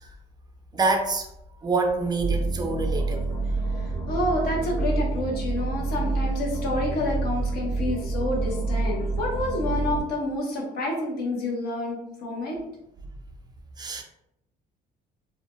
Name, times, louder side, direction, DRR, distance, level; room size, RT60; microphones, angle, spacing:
voice 1, 0.7-1.3 1.6-3.3 13.8-14.0, right 3 dB, 25° right, 3 dB, 0.5 m, -26 dB
sound 1, 2.2-10.0, right 3 dB, 30° left, 0.9 m, -28 dB
voice 2, 4.1-12.6, left 1 dB, 65° left, -2 dB, 1.0 m, -28 dB
2.7 x 2.1 x 3.0 m, 0.81 s
cardioid pair, 110°, 17 cm